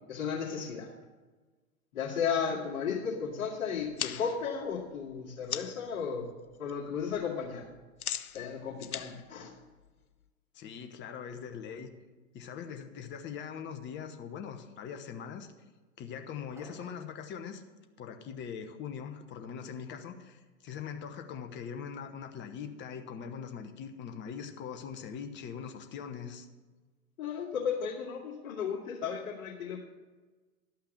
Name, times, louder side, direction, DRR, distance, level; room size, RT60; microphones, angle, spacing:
voice 1, 0.1-0.9 1.9-6.3 6.6-7.7 8.3-9.5 27.2-29.8, left 6 dB, 55° left, -9 dB, 2.4 m, -34 dB
sound 1, 3.8-5.9 6.3-6.7 7.0-10.3, left 9 dB, 85° left, 0.7 m, -40 dB
voice 2, 10.5-11.9 12.3-15.5 16.0-17.6 18.0-26.5, left 7 dB, 25° left, 6 dB, 1.1 m, -42 dB
sound 2, 16.6-17.2, right 1 dB, 5° right, 1.1 m, -53 dB
12.0 x 5.8 x 7.2 m, 1.3 s
figure-of-eight pair, 105°, 42 cm